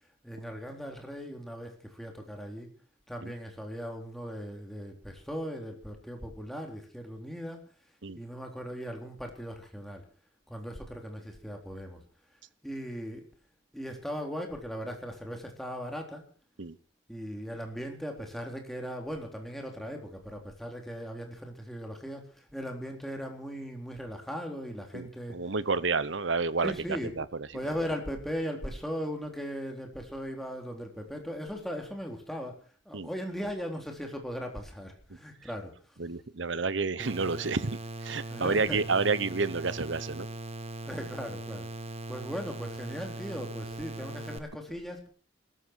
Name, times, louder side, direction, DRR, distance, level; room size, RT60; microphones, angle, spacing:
voice 1, 0.2-2.7 3.1-7.7 8.1-10.0 10.5-12.0 12.6-13.3 13.7-16.2 17.1-25.4 26.6-27.1 27.5-36.0 38.3-38.8 40.8-41.7 42.1-45.1, equal, ahead, 2 dB, 3.8 m, -38 dB
voice 2, 24.9-26.7 27.2-27.3 32.9-33.1 36.0-37.7 38.0-40.3, right 4 dB, 70° right, 16 dB, 1.0 m, -29 dB
sound 1, 37.0-44.4, right 2 dB, 30° right, 1.6 m, -40 dB
22.0 x 14.0 x 4.7 m, 0.41 s
head